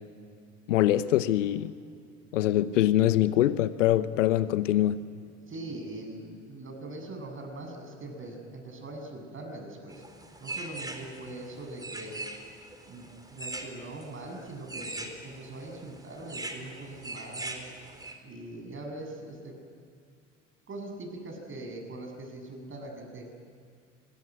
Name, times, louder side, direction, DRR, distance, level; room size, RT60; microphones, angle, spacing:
voice 1, 0.7-1.7 2.3-5.0, left 13 dB, 75° left, 14 dB, 0.9 m, -24 dB
voice 2, 5.5-10.0 10.4-12.3 12.9-17.7 18.2-19.6 20.7-23.3, right 2 dB, 35° right, 4 dB, 7.4 m, -42 dB
sound 1, 9.9-18.1, right 2 dB, 10° right, 4.0 m, -41 dB
26.0 x 21.5 x 9.5 m, 2.4 s
figure-of-eight pair, 65°, 38 cm